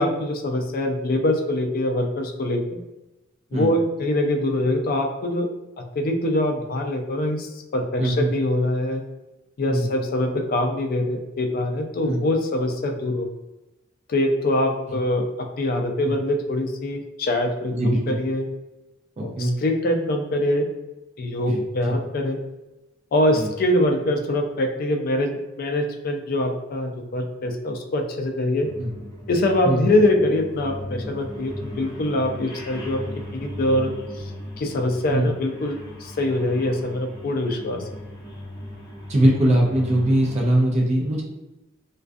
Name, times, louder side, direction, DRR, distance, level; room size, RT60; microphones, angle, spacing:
voice 1, 0.0-2.6 3.5-5.5 5.8-9.0 9.6-13.3 14.1-17.7 18.1-18.5 19.2-20.7 21.2-22.4 23.1-28.7 29.3-33.0 33.3-34.3 34.6-37.8, left 1 dB, 45° left, 4 dB, 0.3 m, -24 dB
voice 2, 8.0-8.3 9.7-9.9 12.0-12.2 14.9-15.0 16.0-16.1 17.7-18.2 19.2-19.5 21.4-21.9 23.3-23.5 28.8-28.9 29.6-29.9 35.1-35.3 39.1-41.2, right 1 dB, 35° right, -1 dB, 0.4 m, -21 dB
sound 1, 28.6-40.4, left 1 dB, 20° left, 0.7 m, -37 dB
2.3 x 2.2 x 2.5 m, 1.0 s
head